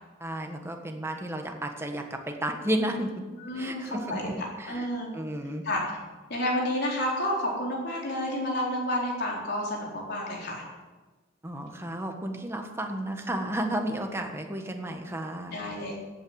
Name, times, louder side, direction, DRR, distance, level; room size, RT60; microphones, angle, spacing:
voice 1, 0.2-3.1 3.5-4.3 4.6-4.9 5.1-5.6 11.4-15.6, right 1 dB, 15° right, 3 dB, 1.6 m, -32 dB
voice 2, 3.4-5.1 5.6-5.8 6.3-10.6 15.5-16.0, left 1 dB, 55° left, -2 dB, 4.3 m, -30 dB
15.0 x 9.0 x 8.2 m, 1.3 s
head